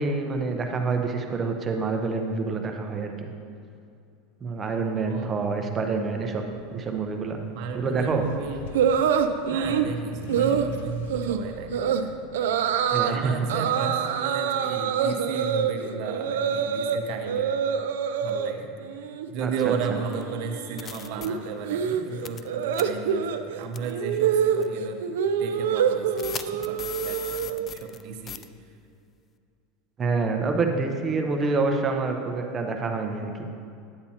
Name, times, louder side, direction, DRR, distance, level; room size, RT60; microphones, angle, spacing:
voice 1, 0.0-3.3 4.4-6.4 6.7-7.4 7.7-8.2 12.8-13.3 19.4-20.0 21.2-21.3 30.0-33.3, right 4 dB, 25° right, 4 dB, 0.8 m, -27 dB
voice 2, 5.1-5.4 7.5-8.7 9.5-12.6 13.0-17.6 18.2-25.0 25.4-28.5, right 6 dB, 60° right, 4 dB, 0.9 m, -34 dB
Accelerating revving vroom, 6.0-13.4, left 2 dB, 85° left, 0.6 m, -44 dB
sound 1, 8.7-9.9 10.3-10.7 11.1-11.4 11.7-12.0 12.3-13.1 13.5-17.0 17.2-18.5 18.9-19.3 19.5-27.7, right 8 dB, 90° right, 0.4 m, -26 dB
sound 2, 20.1-20.2 20.8-21.3 22.3-22.5 22.7-22.8 23.7-23.9 24.6-24.7 26.2-28.0 28.3-28.4, left 9 dB, 30° left, 0.3 m, -37 dB
9.7 x 8.4 x 2.8 m, 2.4 s
supercardioid pair, 125°, 0 cm